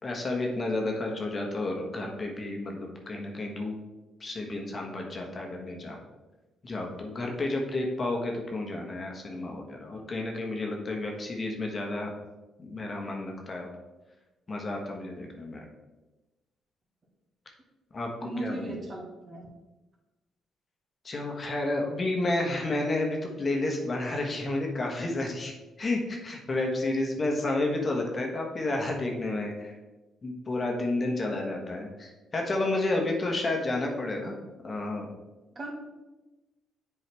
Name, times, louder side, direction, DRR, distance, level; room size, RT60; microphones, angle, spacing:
voice 1, 0.0-3.7 4.2-6.0 6.6-12.1 12.6-13.7 14.5-15.6 17.9-18.7 21.0-25.5 25.8-29.7 30.2-35.1, left 2 dB, 35° left, 1 dB, 1.3 m, -31 dB
voice 2, 18.2-19.5 35.5-35.7, right 2 dB, 40° right, -1 dB, 1.8 m, -37 dB
7.7 x 4.8 x 3.5 m, 1.1 s
cardioid pair, 90°, 0 cm